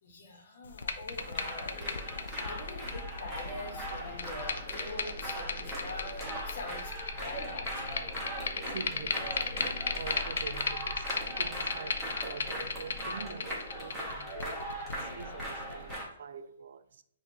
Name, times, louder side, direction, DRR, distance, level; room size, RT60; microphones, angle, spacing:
voice 1, 0.0-8.1, left 2 dB, 50° left, 1.3 m, -45 dB
sound 1, 0.6-15.9, left 5 dB, 75° left, 0.5 m, -37 dB
sound 2, 1.2-16.1, right 1 dB, 5° right, 0.9 m, -40 dB
voice 2, 8.6-11.1 11.4-17.0, right 6 dB, 60° right, 0.3 m, -45 dB
6.5 x 2.5 x 2.9 m
hypercardioid pair, 170°, 0 cm